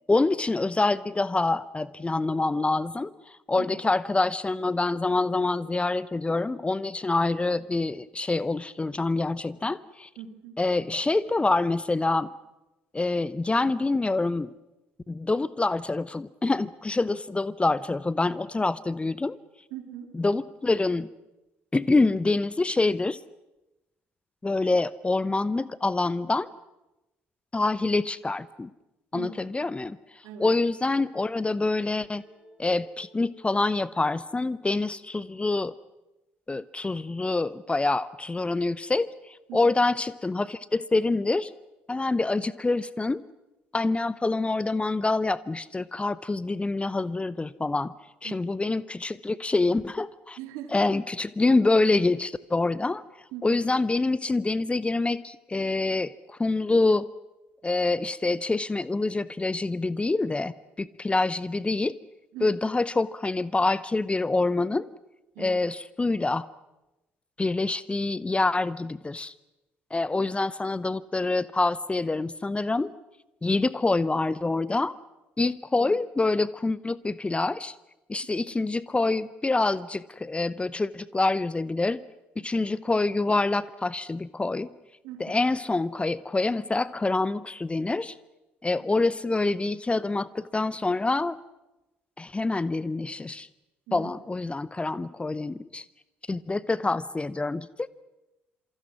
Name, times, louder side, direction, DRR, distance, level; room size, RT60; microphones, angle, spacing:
voice 1, 0.1-10.1 10.6-12.3 12.9-14.5 15.1-19.4 20.1-21.1 21.7-23.2 24.4-26.5 27.5-28.7 29.1-32.2 32.6-35.7 36.5-41.5 41.9-43.2 43.7-47.9 48.2-50.4 50.7-57.1 57.6-61.9 62.4-64.9 65.4-66.5 67.4-69.3 69.9-72.9 73.4-75.0 75.4-77.8 78.1-82.0 82.4-84.7 85.2-88.2 88.6-91.4 92.2-93.5 93.9-95.8 96.3-97.9, left 3 dB, 20° left, 19 dB, 0.7 m, -26 dB
voice 2, 10.2-10.6 19.7-20.1 29.1-29.5 30.2-30.5 39.5-39.6 48.2-48.5 50.4-50.9 53.3-53.6 62.3-62.5 65.3-65.6 75.8-75.9 85.0-85.4 88.8-88.9 93.9-94.1, right 9 dB, 65° right, 6 dB, 2.7 m, -41 dB
sound 1, 31.8-35.5, equal, 25° right, 6.8 m, -57 dB
27.0 x 24.5 x 6.1 m, 0.99 s
figure-of-eight pair, 50°, 6 cm